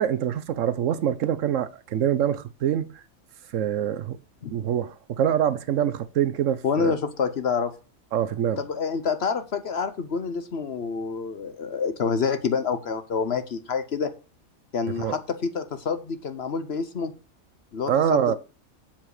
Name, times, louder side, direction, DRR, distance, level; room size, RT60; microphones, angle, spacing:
voice 1, 0.0-3.0 3.5-4.2 4.5-6.9 8.1-8.6 15.0-15.2 17.9-18.3, right 9 dB, 70° right, 1.0 m, -25 dB
voice 2, 6.6-7.7 8.6-14.1 14.7-17.1 17.7-18.3, left 5 dB, 55° left, 1.0 m, -27 dB
7.6 x 7.3 x 4.8 m
omnidirectional pair, 1.5 m